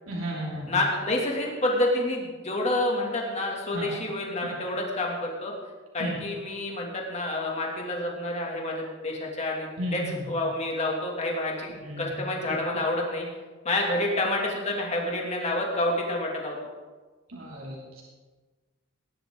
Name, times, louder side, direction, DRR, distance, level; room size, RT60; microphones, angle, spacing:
voice 1, 0.1-0.8 3.7-3.9 6.0-6.1 9.8-10.1 11.8-12.1 17.3-18.0, equal, 85° right, -4 dB, 2.8 m, -33 dB
voice 2, 0.7-5.5 5.9-11.7 12.0-13.3 13.6-16.6, left 1 dB, 35° left, -1 dB, 2.5 m, -28 dB
19.0 x 11.0 x 3.9 m, 1.3 s
head